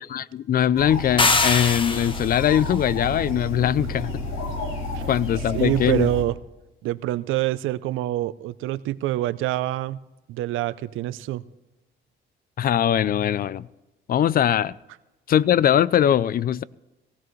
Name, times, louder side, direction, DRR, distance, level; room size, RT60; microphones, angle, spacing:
voice 1, 0.0-4.3 5.1-6.1 12.6-13.7 14.1-14.8 15.3-16.6, left 10 dB, 50° left, 21 dB, 0.4 m, -21 dB
sound 1, 0.7-6.2, left 2 dB, 90° left, 2.1 m, -31 dB
sound 2, 1.2-2.5, left 3 dB, 25° left, 0.9 m, -22 dB
voice 2, 5.5-6.3 6.8-10.0 10.3-11.4, right 14 dB, 85° right, 16 dB, 0.5 m, -26 dB
16.5 x 16.5 x 3.1 m, 1.0 s
cardioid pair, 90°, 20 cm